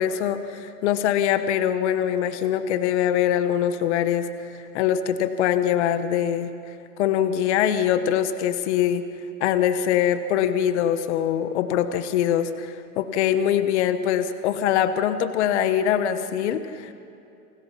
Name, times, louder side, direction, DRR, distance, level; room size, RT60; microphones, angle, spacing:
voice 1, 0.0-6.5 7.0-9.1 9.4-16.9, left 9 dB, 45° left, 10 dB, 1.2 m, -23 dB
29.5 x 20.5 x 5.8 m, 2.7 s
hypercardioid pair, 155°, 49 cm